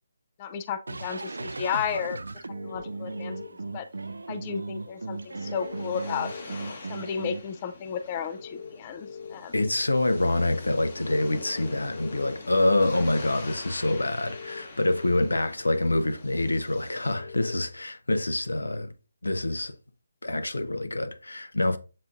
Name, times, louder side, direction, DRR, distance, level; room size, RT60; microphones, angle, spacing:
voice 1, 0.4-2.2 2.6-3.4 3.7-3.9 4.3-6.3 6.9-9.5, left 7 dB, 30° left, 0.3 m, -33 dB
sound 1, 0.9-7.4, right 3 dB, 80° right, 0.3 m, -37 dB
sound 2, 2.5-3.5 5.4-6.4 8.4-9.3 11.3-12.3 14.2-15.2 17.1-17.5, left 5 dB, 70° left, 1.7 m, -42 dB
sound 3, 4.9-17.1, left 3 dB, 50° left, 0.9 m, -45 dB
voice 2, 9.5-18.9 19.2-19.7 20.2-21.8, left 2 dB, 85° left, 0.6 m, -26 dB
7.3 x 2.5 x 2.4 m
figure-of-eight pair, 150°, 0 cm